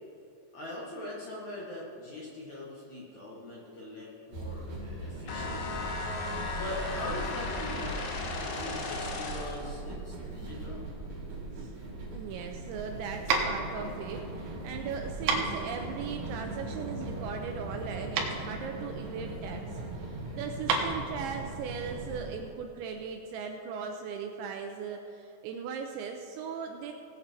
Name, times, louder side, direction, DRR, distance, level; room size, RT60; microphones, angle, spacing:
voice 1, 0.5-5.8 6.6-8.1 8.4-10.8, left 1 dB, 60° left, -6 dB, 2.0 m, -41 dB
sound 1, 4.3-22.4, right 2 dB, 50° right, 2.4 m, -40 dB
sound 2, 5.3-9.7, left 3 dB, 90° left, 4.2 m, -36 dB
voice 2, 12.1-26.9, right 6 dB, 90° right, 3 dB, 2.6 m, -39 dB
sound 3, 12.4-22.2, right 4 dB, 70° right, 2.7 m, -34 dB
17.5 x 8.2 x 4.5 m, 2.9 s
omnidirectional pair, 5.9 m